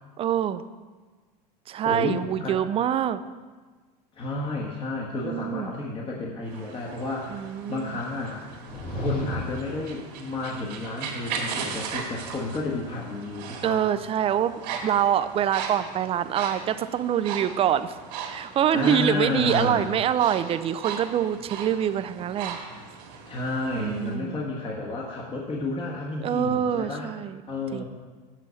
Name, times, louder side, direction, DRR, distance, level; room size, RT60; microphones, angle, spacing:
voice 1, 0.2-0.6 1.7-3.2 5.2-5.7 7.3-8.0 13.6-14.6 14.8-18.0 18.2-22.6 23.8-24.4 26.2-27.4 27.7-27.8, right 10 dB, 30° right, 13 dB, 0.4 m, -25 dB
voice 2, 1.8-2.6 4.1-8.4 8.9-13.8 18.7-19.8 23.2-27.1 27.5-27.8, left 3 dB, 25° left, -3 dB, 1.3 m, -31 dB
sound 1, 6.5-24.2, right 6 dB, 80° right, 1.9 m, -38 dB
sound 2, 8.5-9.8, left 1 dB, 40° left, 1.7 m, -32 dB
7.7 x 6.0 x 6.8 m, 1.4 s
supercardioid pair, 115°, 21 cm